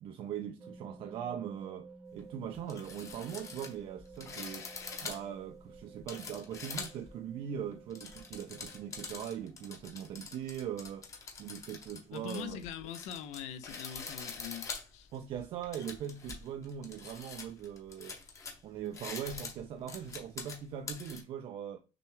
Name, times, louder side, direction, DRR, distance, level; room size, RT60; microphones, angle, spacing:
voice 1, 0.0-4.7 5.0-11.1 11.4-12.6 15.1-18.2 18.6-21.8, right 9 dB, 50° right, 0.3 m, -41 dB
sound 1, 0.6-9.3, right 4 dB, 10° right, 0.8 m, -54 dB
sound 2, 2.1-2.2 2.5-7.1 7.7-21.2, left 4 dB, 25° left, 0.7 m, -45 dB
voice 2, 12.1-15.1, left 8 dB, 80° left, 0.5 m, -43 dB
6.0 x 2.3 x 3.1 m
cardioid pair, 175°, 11 cm